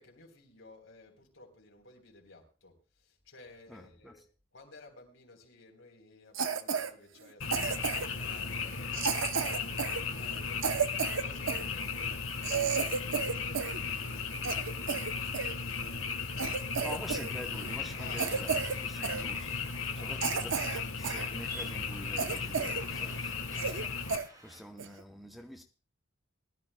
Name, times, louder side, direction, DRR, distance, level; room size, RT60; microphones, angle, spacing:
voice 1, 0.0-4.2 4.5-16.1 16.5-16.9 18.0-18.8 19.9-20.5, left 3 dB, 65° left, 3.6 m, -55 dB
voice 2, 3.7-4.1 16.8-18.6 18.9-25.6, equal, ahead, 0.7 m, -47 dB
Cough, 6.3-6.9 7.5-8.2 8.9-11.7 12.1-12.2 12.4-13.8 14.1-15.5 16.0-16.1 16.4-17.3 17.6-17.8 18.2-18.8 19.0-19.2 19.7-19.8 20.2-21.3 21.6-21.7 22.2-22.9 23.2-23.3 23.6-23.8 24.1-24.3 24.8-25.0, right 6 dB, 65° right, 0.7 m, -32 dB
Frog, 7.4-24.2, left 5 dB, 85° left, 1.4 m, -36 dB
sound 1, 17.5-24.6, left 1 dB, 20° right, 3.1 m, -52 dB
21.5 x 12.5 x 2.2 m
head